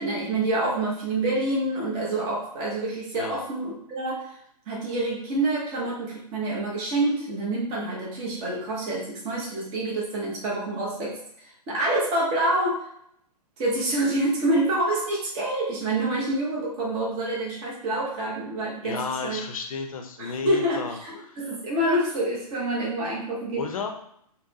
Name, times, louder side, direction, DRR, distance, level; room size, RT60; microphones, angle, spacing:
voice 1, 0.0-4.4 4.7-12.9 13.6-19.4 20.2-23.6, right 1 dB, 25° right, -4 dB, 0.8 m, -27 dB
voice 2, 18.8-21.0 21.3-21.6 23.6-23.9, left 5 dB, 60° left, 5 dB, 0.6 m, -33 dB
4.0 x 2.1 x 2.8 m, 0.70 s
figure-of-eight pair, 125°, 20 cm